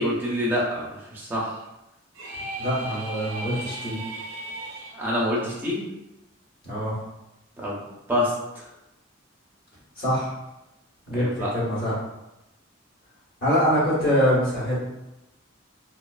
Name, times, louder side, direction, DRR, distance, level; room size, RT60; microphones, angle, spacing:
voice 1, 0.0-1.6 4.9-5.8 7.6-7.8 8.1-8.7 11.2-11.5, equal, 10° right, -6 dB, 0.5 m, -26 dB
sound 1, 2.1-4.9, right 1 dB, 75° right, 0.5 m, -36 dB
voice 2, 2.6-4.0 6.6-6.9 10.0-10.3 11.1-11.9 13.4-14.8, equal, 50° left, -8 dB, 1.1 m, -24 dB
2.4 x 2.3 x 2.2 m, 0.93 s
head